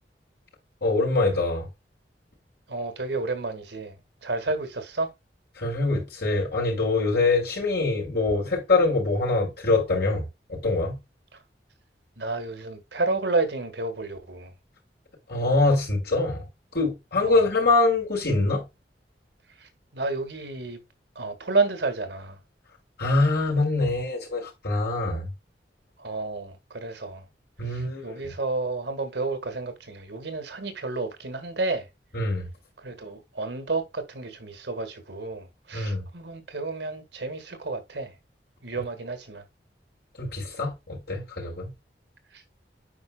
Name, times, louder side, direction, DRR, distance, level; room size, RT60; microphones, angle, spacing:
voice 1, 0.8-1.7 5.6-10.2 10.5-11.0 15.3-16.5 16.7-18.6 23.0-25.3 27.6-28.3 32.1-32.5 35.7-36.0 38.7-38.8 40.2-41.7, left 3 dB, 65° left, 4.9 m, -24 dB
voice 2, 2.7-5.1 12.2-14.5 17.2-17.4 19.6-20.8 21.1-22.4 26.0-27.2 27.6-31.9 32.8-38.1 38.6-39.4 42.3-42.4, right 3 dB, 75° right, 1.7 m, -31 dB
9.5 x 5.0 x 2.2 m
head